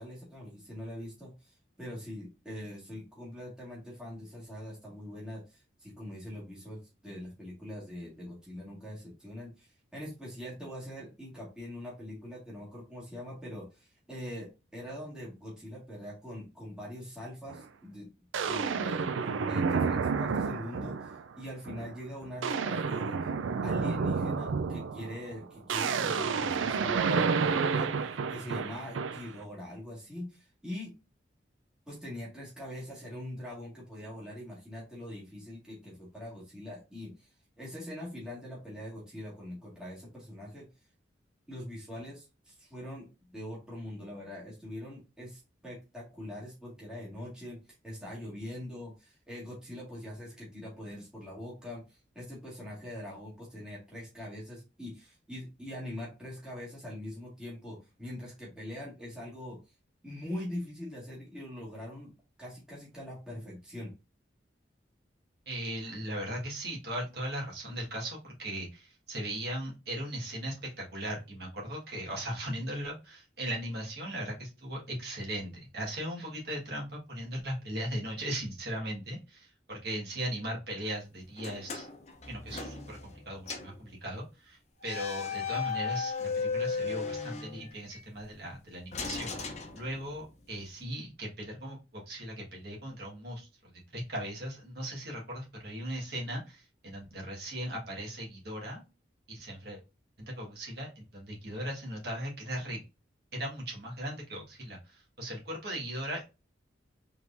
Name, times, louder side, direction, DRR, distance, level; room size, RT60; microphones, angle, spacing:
voice 1, 0.0-18.1 18.5-19.1 19.5-23.2 23.6-27.9 28.3-30.9 31.9-37.3 37.6-40.7 41.5-47.6 47.8-59.6 60.0-62.1 62.4-63.9, left 1 dB, 5° right, -6 dB, 1.9 m, -43 dB
sound 1, 17.5-17.6 18.3-21.2 21.7-21.9 22.2-29.4, right 5 dB, 90° right, 0.4 m, -30 dB
voice 2, 65.4-81.9 82.3-89.3 89.7-98.8 99.3-99.8 100.2-102.8 103.3-106.2, right 1 dB, 55° right, -2 dB, 1.6 m, -38 dB
sound 2, 81.4-83.2 83.5-83.8 84.8-88.0 88.9-90.3, left 5 dB, 35° left, 0.7 m, -36 dB
4.5 x 3.6 x 2.6 m, 0.28 s
head